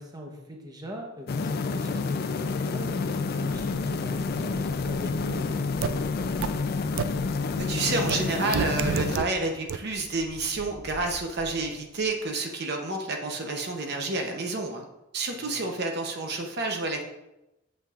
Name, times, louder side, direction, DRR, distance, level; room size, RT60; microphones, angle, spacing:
voice 1, 0.0-6.6 15.3-15.6, equal, 20° right, 1 dB, 0.9 m, -41 dB
sound 1, 1.3-9.2, left 4 dB, 50° left, 0.4 m, -29 dB
Ocean, 2.6-12.3, equal, 20° left, 1.3 m, -46 dB
sound 2, 5.8-5.9 6.4-6.5 7.0-7.1 8.1-8.2 8.5-9.2 9.7-9.8, right 7 dB, 85° right, 0.3 m, -27 dB
voice 2, 7.6-14.8 15.1-17.0, right 3 dB, 55° right, 3 dB, 0.8 m, -29 dB
8.2 x 7.4 x 2.5 m, 0.94 s
head